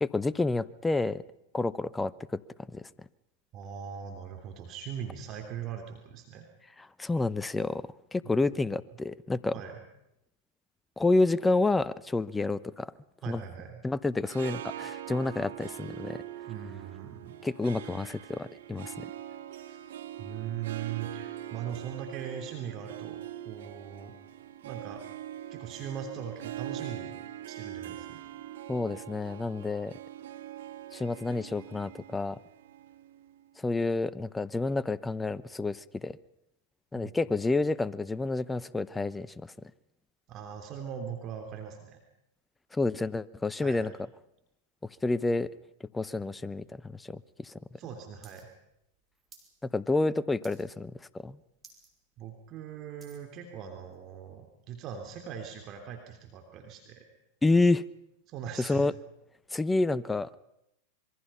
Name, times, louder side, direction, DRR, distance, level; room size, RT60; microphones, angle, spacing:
voice 1, 0.0-1.2 1.5-2.4 2.7-2.9 6.8-9.5 11.0-12.9 13.3-13.4 13.8-16.2 17.4-19.1 28.7-29.9 30.9-32.4 33.6-36.2 36.9-39.5 42.7-43.9 45.0-45.5 45.9-47.5 49.7-50.9 51.2-51.4 57.4-57.8 58.6-58.9 59.5-60.4, left 3 dB, 10° left, 18 dB, 0.8 m, -29 dB
voice 2, 3.5-6.5 8.2-8.8 9.5-9.8 13.2-13.8 16.5-17.4 19.7-19.8 20.2-24.1 24.6-25.0 25.5-27.2 27.5-28.2 36.9-37.3 40.3-42.0 43.6-43.9 47.8-48.5 52.2-57.0 58.3-58.9, right 8 dB, 40° right, 4 dB, 3.2 m, -40 dB
Harp, 14.1-33.5, right 12 dB, 70° right, 1.4 m, -43 dB
sound 1, 48.2-48.4 48.7-49.5 49.9-50.1 50.4-50.9 51.2-51.3 51.6-51.9 52.3-53.3 53.9-54.0, right 4 dB, 20° right, 5.4 m, -55 dB
26.0 x 23.0 x 5.7 m, 0.84 s
hypercardioid pair, 100°, 0 cm